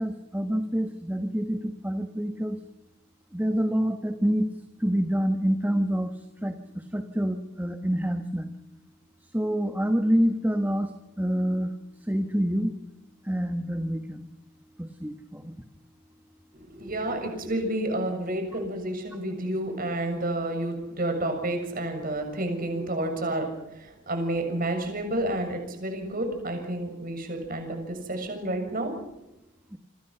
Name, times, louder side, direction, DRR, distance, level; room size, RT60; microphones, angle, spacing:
voice 1, 0.0-2.6 3.3-4.5 4.8-8.5 9.3-10.9 11.2-11.7 12.1-12.7 13.2-14.3 14.8-15.5 29.7-29.8, equal, 10° right, 6 dB, 1.4 m, -27 dB
voice 2, 16.5-23.5 23.8-29.0, right 1 dB, 40° right, 5 dB, 6.9 m, -30 dB
28.0 x 25.5 x 5.9 m, 0.92 s
head